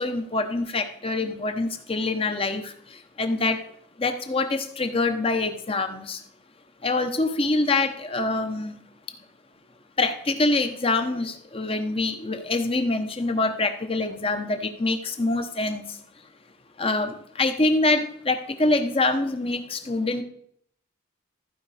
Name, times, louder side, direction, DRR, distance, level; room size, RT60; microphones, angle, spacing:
voice 1, 0.0-2.7 3.2-3.6 4.0-6.2 6.8-8.7 10.0-15.8 16.8-20.2, left 2 dB, 30° left, 7 dB, 0.9 m, -25 dB
14.5 x 5.2 x 4.9 m, 0.68 s
head